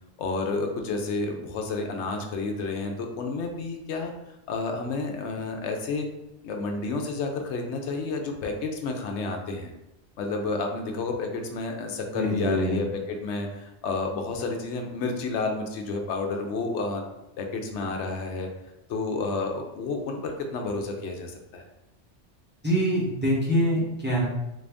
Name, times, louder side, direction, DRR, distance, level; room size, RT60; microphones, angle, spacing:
voice 1, 0.2-4.1 4.5-6.1 6.4-9.7 10.2-17.0 17.4-18.5 18.9-21.6, left 3 dB, 80° left, 3 dB, 0.9 m, -30 dB
voice 2, 12.1-12.8 22.6-24.2, equal, 10° right, -5 dB, 0.7 m, -24 dB
3.8 x 2.6 x 3.4 m, 0.92 s
omnidirectional pair, 1.2 m